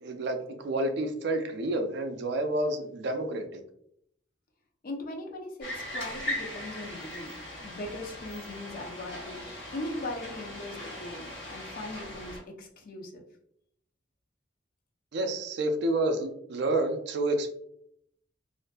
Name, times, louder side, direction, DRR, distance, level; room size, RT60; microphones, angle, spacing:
voice 1, 0.0-3.6 15.1-17.5, right 1 dB, 65° right, 6 dB, 0.4 m, -29 dB
voice 2, 4.8-7.3 7.6-13.2, left 1 dB, 50° left, 2 dB, 0.4 m, -39 dB
sound 1, 5.6-12.4, left 1 dB, 75° left, 1.1 m, -39 dB
2.5 x 2.5 x 2.2 m, 0.71 s
head